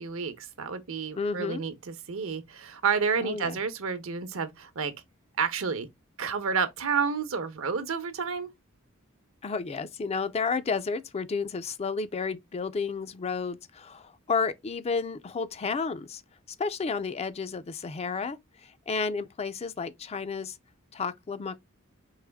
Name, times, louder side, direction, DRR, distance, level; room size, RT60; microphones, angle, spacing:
voice 1, 0.0-4.9 5.4-5.9 6.2-8.5, right 5 dB, 70° right, 0.8 m, -30 dB
voice 2, 1.2-1.6 3.2-3.6 9.4-16.2 16.6-20.6 20.9-21.6, left 5 dB, 30° left, 0.4 m, -31 dB
4.8 x 3.0 x 3.4 m
head